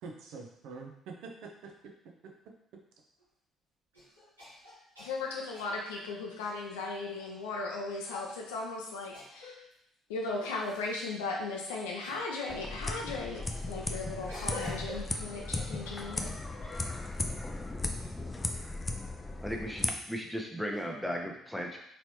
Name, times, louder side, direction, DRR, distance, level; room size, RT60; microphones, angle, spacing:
voice 1, 0.0-2.3, right 4 dB, 60° right, 2 dB, 0.6 m, -46 dB
sound 1, 3.2-3.3 3.9-7.4 8.0-8.4 9.1-9.7 10.4-11.1 12.0-12.3 13.4-16.0 16.4-17.3 18.0-18.5 19.6-20.1 20.6-20.8, left 2 dB, 90° right, 1.2 m, -48 dB
voice 2, 5.0-9.5 10.1-16.3, left 3 dB, 70° left, -1 dB, 0.5 m, -37 dB
sound 2, 12.5-19.9, left 2 dB, 20° left, 0.5 m, -36 dB
voice 3, 19.4-21.8, equal, ahead, 0 dB, 0.9 m, -36 dB
4.0 x 3.2 x 3.0 m, 0.72 s
figure-of-eight pair, 45°, 0 cm